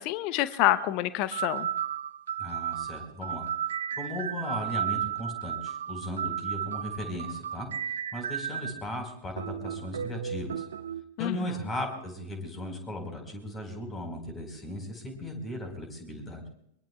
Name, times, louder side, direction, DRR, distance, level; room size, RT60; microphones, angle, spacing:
voice 1, 0.0-1.7 11.2-11.5, left 14 dB, 45° left, 14 dB, 0.8 m, -27 dB
sound 1, 0.6-0.8 1.3-8.8 9.4-11.0, right 9 dB, 65° right, 0.6 m, -34 dB
voice 2, 2.4-3.5 4.0-7.7 8.1-10.6 11.2-16.4, left 1 dB, 20° left, 5 dB, 4.5 m, -37 dB
23.0 x 23.0 x 2.4 m, 0.74 s
figure-of-eight pair, 90°, 0 cm